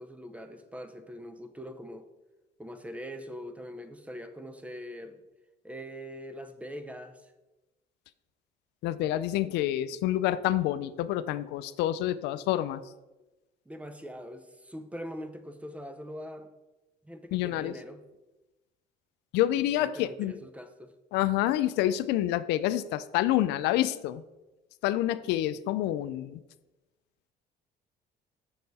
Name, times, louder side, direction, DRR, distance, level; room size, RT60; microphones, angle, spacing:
voice 1, 0.0-2.1 2.6-5.2 5.6-7.3 9.0-9.1 13.7-16.5 17.0-18.0 19.8-20.9, equal, 10° right, 9 dB, 0.7 m, -42 dB
voice 2, 8.8-12.8 17.3-17.7 19.3-20.3 21.1-24.2 24.8-26.4, left 13 dB, 90° left, 14 dB, 0.4 m, -28 dB
6.6 x 6.5 x 4.1 m, 1.0 s
cardioid pair, 110°, 17 cm